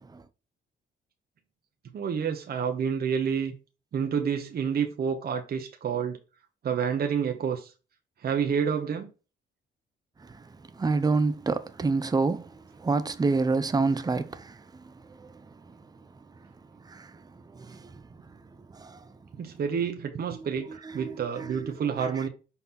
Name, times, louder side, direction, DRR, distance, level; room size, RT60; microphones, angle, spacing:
voice 1, 1.9-3.5 3.9-6.2 6.6-7.7 8.2-9.1 19.4-22.3, right 7 dB, 50° right, 1.1 m, -29 dB
voice 2, 10.8-12.5 12.8-14.5 16.9-17.1 17.6-17.8 18.7-19.0 20.3-20.5 21.0-21.7, right 3 dB, 20° right, 0.7 m, -27 dB
5.7 x 4.2 x 4.0 m
cardioid pair, 90°, 20 cm